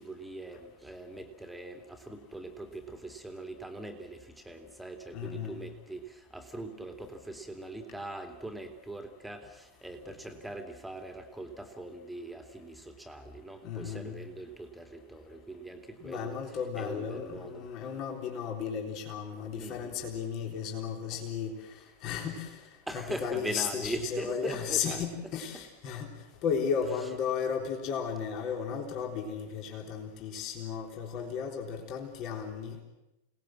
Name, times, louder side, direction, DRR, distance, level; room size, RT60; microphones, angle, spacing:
voice 1, 0.0-16.4 16.7-17.7 19.6-20.1 22.9-25.0, right 2 dB, 5° right, 5 dB, 2.6 m, -41 dB
voice 2, 5.1-5.7 13.6-14.2 16.0-22.6 22.9-26.1 26.4-32.8, left 7 dB, 40° left, 2 dB, 3.7 m, -34 dB
29.0 x 19.0 x 7.6 m, 0.97 s
figure-of-eight pair, 90°, 0 cm